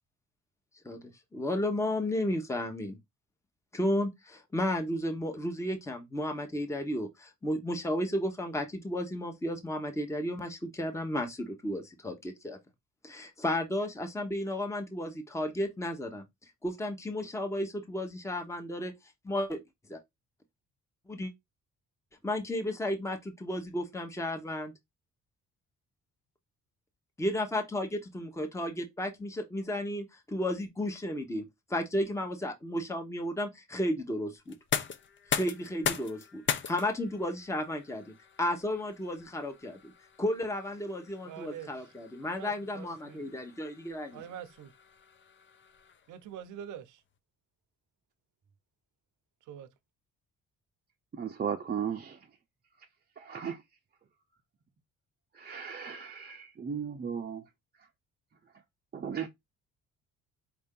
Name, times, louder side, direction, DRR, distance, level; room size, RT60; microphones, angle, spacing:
voice 1, 1.3-3.0 3.7-12.6 13.0-16.2 16.6-18.9 19.2-19.6 19.9-20.0 21.1-21.3 22.2-24.7 27.2-31.4 31.7-34.6 35.3-38.0 38.4-39.9 40.2-44.2, left 1 dB, 10° left, 1.0 m, -33 dB
sound 1, 34.5-46.3, left 7 dB, 40° left, 0.6 m, -39 dB
voice 2, 41.3-41.7 42.2-43.2 44.1-44.7 46.1-47.0 49.5-49.7, right 9 dB, 75° right, 0.7 m, -44 dB
voice 3, 51.1-52.2 53.2-53.6 55.3-57.4 58.9-59.3, right 7 dB, 30° right, 0.6 m, -36 dB
4.6 x 2.6 x 3.7 m
cardioid pair, 90°, 30 cm